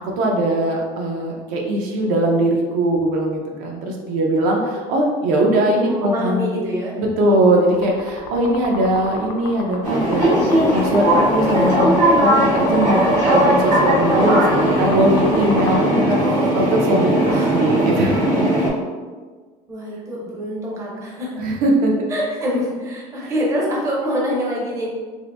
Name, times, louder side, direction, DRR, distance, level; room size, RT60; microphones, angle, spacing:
voice 1, 0.0-6.6 7.0-16.2 16.5-18.1 21.4-21.9 23.2-23.3, right 1 dB, 65° right, 0 dB, 0.6 m, -20 dB
voice 2, 5.7-7.0 16.0-16.6 17.3-17.6 19.7-21.4 22.1-24.9, equal, 20° right, -4 dB, 0.6 m, -25 dB
sound 1, 7.6-15.8, left 6 dB, 60° left, 0.4 m, -29 dB
sound 2, 9.8-18.7, right 1 dB, 50° right, 1.2 m, -18 dB
2.7 x 2.5 x 3.3 m, 1.4 s
cardioid pair, 180°, 16 cm